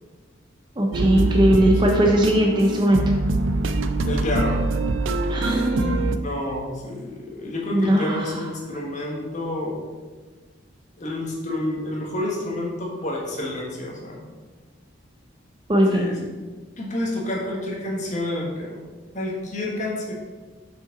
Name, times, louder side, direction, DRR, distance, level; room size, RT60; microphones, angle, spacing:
voice 1, 0.8-3.0 5.3-5.9 7.7-8.5 15.7-16.1, equal, 25° right, 1 dB, 0.6 m, -19 dB
sound 1, 0.9-6.2, right 2 dB, 75° right, 0.4 m, -24 dB
voice 2, 4.0-4.6 6.2-9.8 11.0-14.3 15.9-16.3 16.8-18.8 19.1-20.1, left 1 dB, 35° left, -3 dB, 1.4 m, -29 dB
5.8 x 5.5 x 3.8 m, 1.4 s
head